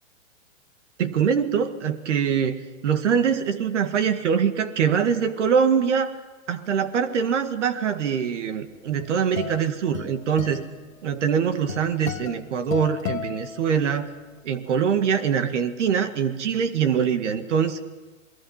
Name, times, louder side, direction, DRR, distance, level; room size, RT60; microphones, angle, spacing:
voice 1, 1.0-2.6 2.8-6.1 6.5-10.7 11.0-14.1 14.4-17.8, right 7 dB, 60° right, 9 dB, 2.1 m, -23 dB
sound 1, 8.7-14.2, left 9 dB, 75° left, 1.4 m, -35 dB
27.5 x 20.5 x 5.8 m, 1.2 s
hypercardioid pair, 140°, 40 cm